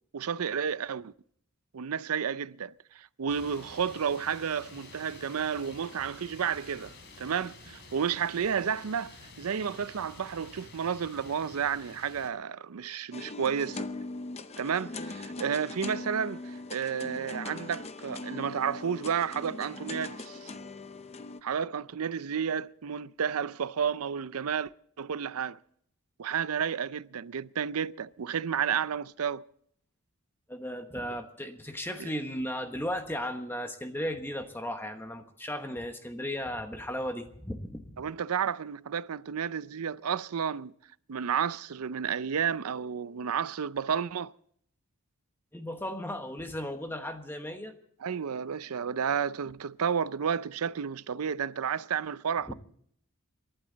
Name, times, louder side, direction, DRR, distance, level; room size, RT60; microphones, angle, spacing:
voice 1, 0.1-1.1 1.7-13.9 14.6-20.5 21.4-24.7 25.0-25.6 26.2-29.4 32.0-32.1 38.0-40.7 41.1-44.3 48.0-52.5, right 7 dB, 85° right, 0.5 m, -31 dB
sound 1, 3.3-12.3, left 3 dB, 50° left, 3.3 m, -50 dB
sound 2, 13.1-21.4, left 2 dB, 30° left, 0.7 m, -40 dB
voice 2, 30.5-37.9 45.5-47.7 52.5-52.6, equal, 10° left, 1.1 m, -35 dB
27.5 x 12.0 x 4.0 m
head